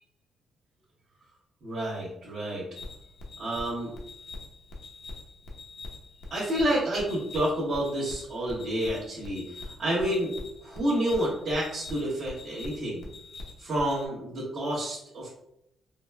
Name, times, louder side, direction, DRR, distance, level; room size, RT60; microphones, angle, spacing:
voice 1, 1.6-2.6 3.4-3.9 6.3-10.3 10.6-13.0 13.6-15.3, right 1 dB, 50° right, -10 dB, 1.2 m, -29 dB
sound 1, 2.7-14.1, left 2 dB, 70° left, 0.7 m, -43 dB
4.1 x 2.2 x 2.2 m, 0.81 s
cardioid pair, 130°, 0 cm